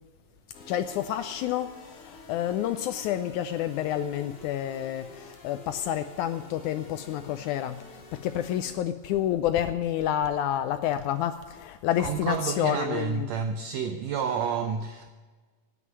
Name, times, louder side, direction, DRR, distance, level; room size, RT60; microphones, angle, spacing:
sound 1, 0.5-8.8, left 2 dB, 50° left, 2.5 m, -49 dB
voice 1, 0.7-13.3, left 11 dB, 80° left, 1.8 m, -29 dB
voice 2, 12.0-15.1, right 6 dB, 85° right, 1.5 m, -30 dB
9.6 x 9.4 x 9.2 m
omnidirectional pair, 3.8 m